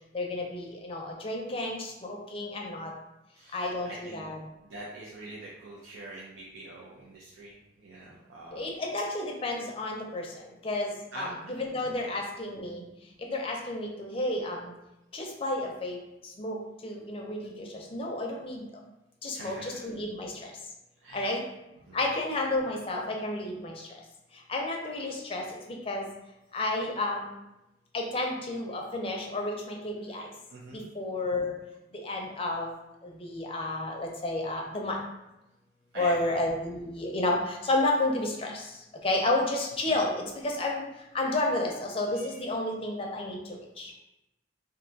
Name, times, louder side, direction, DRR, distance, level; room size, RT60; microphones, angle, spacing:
voice 1, 0.1-2.9 3.5-4.4 8.5-12.9 13.3-14.7 15.1-16.0 16.4-16.6 16.8-18.6 19.2-20.3 21.1-21.4 21.9-23.7 24.5-26.1 26.5-27.3 27.9-30.3 30.7-31.5 32.0-32.7 33.0-35.0 36.0-38.7 39.0-40.8 41.1-43.9, left 2 dB, 30° left, 0 dB, 0.5 m, -31 dB
voice 2, 3.3-4.3 4.6-7.5 7.8-8.6 11.1-12.2 12.6-12.7 19.3-19.9 21.0-21.4 21.9-22.0 28.7-28.8 30.1-30.2 30.5-30.8 35.9-36.4 41.2-41.4 42.1-42.4, right 1 dB, 75° right, -6 dB, 0.5 m, -45 dB
2.6 x 2.3 x 3.9 m, 0.93 s
head